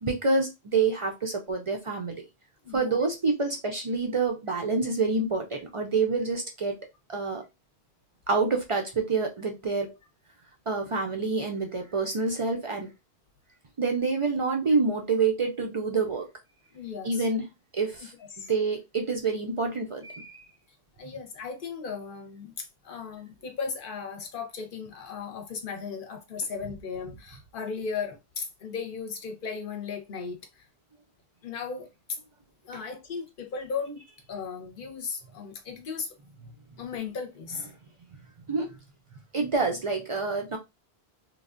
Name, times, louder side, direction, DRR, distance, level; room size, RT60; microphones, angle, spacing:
voice 1, 0.0-2.3 2.7-7.4 8.3-9.9 10.7-12.9 13.8-16.3 17.0-17.5 17.7-18.1 18.5-20.4 38.5-38.8 39.3-40.6, right 4 dB, 55° right, 0.3 m, -27 dB
voice 2, 2.6-3.0 16.7-17.2 18.2-18.5 21.0-30.7 31.4-32.2 32.6-36.2 36.8-37.7, left 5 dB, 60° left, 0.8 m, -36 dB
3.2 x 2.2 x 2.4 m
omnidirectional pair, 1.1 m